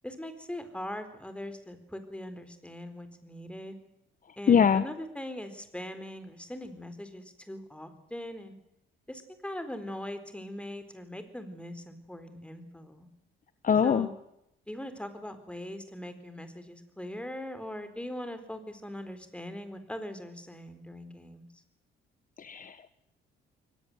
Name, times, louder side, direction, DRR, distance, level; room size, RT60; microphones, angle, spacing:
voice 1, 0.0-3.8 4.4-8.5 9.1-13.1 13.8-14.2 14.7-21.6, left 1 dB, 5° left, 9 dB, 4.3 m, -41 dB
voice 2, 4.5-4.8 13.6-14.1 22.4-22.9, left 7 dB, 45° left, 13 dB, 1.2 m, -23 dB
23.0 x 19.0 x 8.1 m, 0.81 s
cardioid pair, 90°, 20 cm